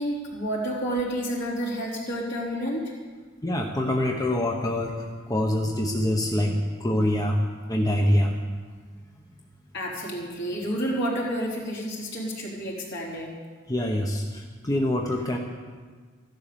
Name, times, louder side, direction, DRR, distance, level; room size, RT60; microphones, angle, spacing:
voice 1, 0.0-2.8 9.7-13.3, equal, 65° left, -3 dB, 4.0 m, -30 dB
voice 2, 3.4-8.4 13.7-15.4, left 1 dB, 20° left, 1 dB, 1.1 m, -25 dB
15.0 x 11.5 x 7.0 m, 1.5 s
head